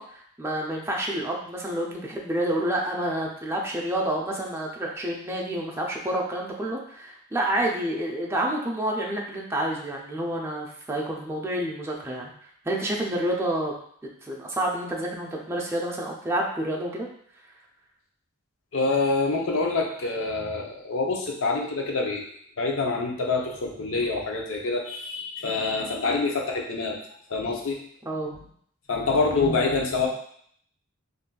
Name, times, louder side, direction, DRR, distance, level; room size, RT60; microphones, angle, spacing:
voice 1, 0.0-12.3 12.7-13.7 14.2-17.1 28.1-28.3, right 1 dB, 15° right, -2 dB, 0.4 m, -29 dB
voice 2, 18.7-22.2 22.6-27.0 27.3-27.8 28.9-30.1, left 3 dB, 70° left, 0 dB, 0.6 m, -26 dB
3.8 x 2.5 x 2.2 m, 0.63 s
head